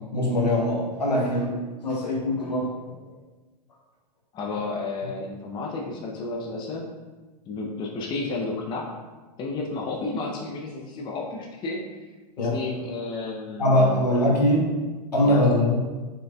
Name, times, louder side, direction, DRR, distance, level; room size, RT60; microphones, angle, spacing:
voice 1, 0.1-2.7 12.4-12.6 13.6-14.7 15.1-15.8, left 1 dB, 80° left, -1 dB, 1.1 m, -22 dB
voice 2, 4.3-6.8 7.5-8.9 9.4-12.0 12.4-14.0 15.2-15.5, left 3 dB, 20° left, -1 dB, 0.6 m, -32 dB
4.8 x 4.5 x 2.3 m, 1.3 s
figure-of-eight pair, 105°, 21 cm